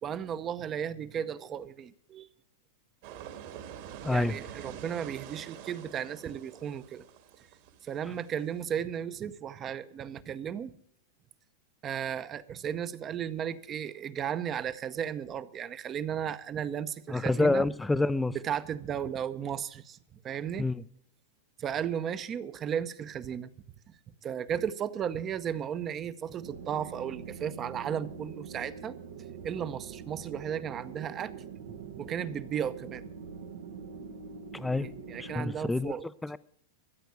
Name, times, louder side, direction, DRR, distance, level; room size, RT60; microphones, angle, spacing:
voice 1, 0.0-2.3 4.1-7.0 7.8-10.7 11.8-17.6 18.3-20.0 20.2-20.7 21.6-23.5 24.2-29.0 29.4-33.1 34.8-36.1, right 8 dB, 30° right, 0.8 m, -35 dB
sound 1, 3.0-8.6, right 9 dB, 55° right, 2.3 m, -46 dB
voice 2, 4.0-4.3 17.1-18.4 20.6-20.8 34.5-34.9 35.2-35.9 36.2-36.4, left 2 dB, 5° left, 0.5 m, -27 dB
sound 2, 26.4-35.5, right 6 dB, 80° right, 1.4 m, -44 dB
14.0 x 8.2 x 8.0 m
hypercardioid pair, 125°, 0 cm